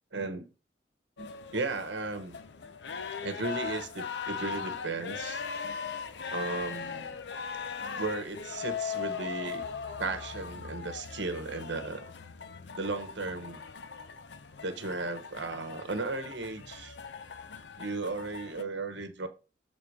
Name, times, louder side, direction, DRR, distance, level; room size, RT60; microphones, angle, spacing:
voice 1, 0.1-0.5 1.2-2.4 3.2-5.4 6.3-7.2 7.9-9.7 10.0-12.0 12.8-13.6 14.6-17.0 17.8-19.3, right 3 dB, 80° right, 1.1 m, -35 dB
sound 1, 1.2-18.6, left 6 dB, 70° left, 0.6 m, -39 dB
6.8 x 3.7 x 5.0 m
head